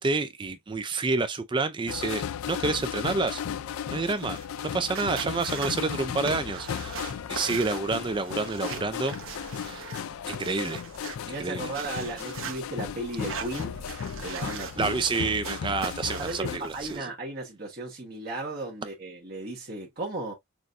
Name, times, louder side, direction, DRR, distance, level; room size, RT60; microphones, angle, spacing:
voice 1, 0.0-3.4 3.9-4.4 4.7-9.2 9.6-9.9 10.3-10.8 11.4-11.7 14.8-17.1, right 3 dB, 20° right, 0.3 m, -29 dB
sound 1, 1.9-16.6, left 8 dB, 85° left, 0.4 m, -36 dB
sound 2, 4.1-17.0, right 5 dB, 75° right, 1.0 m, -41 dB
voice 2, 11.2-13.8 14.2-14.9 16.2-20.3, right 2 dB, 45° right, 1.2 m, -35 dB
6.1 x 2.5 x 2.4 m
head